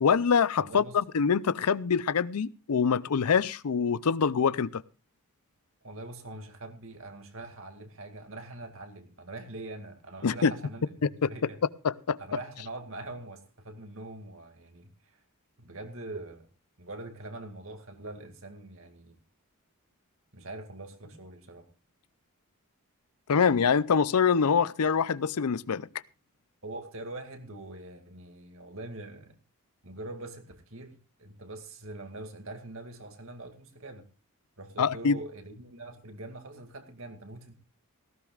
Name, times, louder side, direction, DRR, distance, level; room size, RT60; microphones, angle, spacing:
voice 1, 0.0-4.8 10.2-10.5 11.2-11.3 11.8-12.2 23.3-25.9 34.8-35.2, left 6 dB, 85° left, 18 dB, 0.5 m, -25 dB
voice 2, 0.6-1.0 5.8-11.6 12.2-15.2 15.6-16.5 16.8-19.2 20.3-21.7 26.6-29.4 29.8-34.1 34.6-37.5, right 2 dB, 60° right, 5 dB, 2.2 m, -43 dB
18.0 x 15.5 x 2.4 m, 0.33 s
head